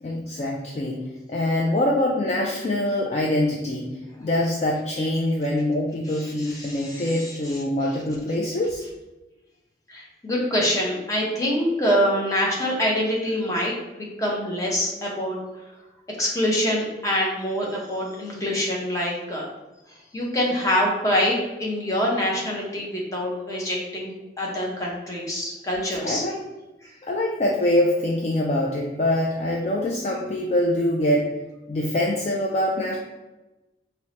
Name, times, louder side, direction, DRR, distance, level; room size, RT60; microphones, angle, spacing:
voice 1, 0.0-8.8 26.0-26.4 27.0-31.3 31.7-33.0, left 1 dB, 35° left, -2 dB, 0.3 m, -24 dB
voice 2, 6.1-7.6 9.9-13.7 14.2-15.4 16.2-19.4 20.1-26.2, equal, 20° left, -3 dB, 0.7 m, -25 dB
4.4 x 2.1 x 2.8 m, 1.1 s
head